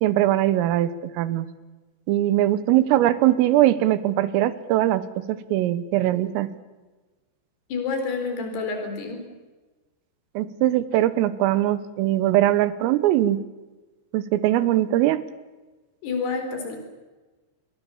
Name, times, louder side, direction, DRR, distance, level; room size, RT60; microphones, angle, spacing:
voice 1, 0.0-1.5 2.1-6.5 10.4-13.4 14.1-15.3, right 14 dB, 85° right, 15 dB, 3.8 m, -21 dB
voice 2, 7.7-9.2 16.0-16.8, left 4 dB, 55° left, 5 dB, 5.9 m, -28 dB
27.0 x 22.5 x 7.1 m, 1.2 s
omnidirectional pair, 5.8 m